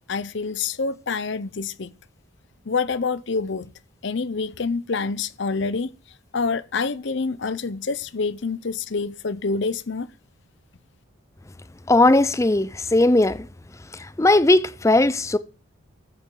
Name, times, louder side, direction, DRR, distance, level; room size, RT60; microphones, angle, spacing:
voice 1, 0.1-1.9 2.7-3.6 4.0-5.9 6.3-10.1, left 4 dB, 55° left, 0.6 m, -27 dB
voice 2, 11.9-13.5 14.2-15.4, left 2 dB, 15° left, 0.5 m, -18 dB
13.5 x 8.9 x 3.8 m
head